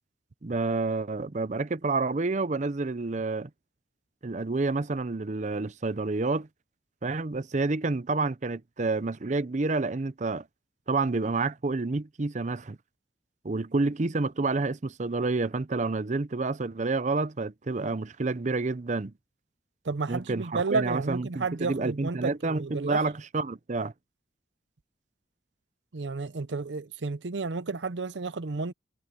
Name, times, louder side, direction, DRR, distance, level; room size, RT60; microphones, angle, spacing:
voice 1, 0.4-3.5 4.2-6.5 7.0-10.5 10.9-12.8 13.4-19.1 20.1-23.9, right 3 dB, 40° right, 0.6 m, -29 dB
voice 2, 19.8-23.0 25.9-28.7, right 4 dB, 90° right, 0.7 m, -31 dB
head